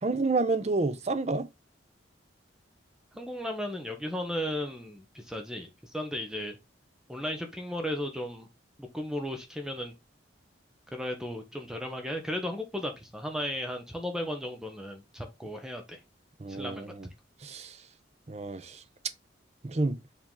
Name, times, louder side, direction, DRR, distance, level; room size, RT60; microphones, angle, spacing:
voice 1, 0.0-1.5 16.4-17.1 17.4-17.8 18.3-18.8 19.6-20.0, right 3 dB, 35° right, 0.6 m, -29 dB
voice 2, 3.1-6.6 7.1-8.5 8.8-9.9 10.9-16.0 16.5-16.9, left 1 dB, 5° right, 0.8 m, -35 dB
7.2 x 3.6 x 3.7 m
head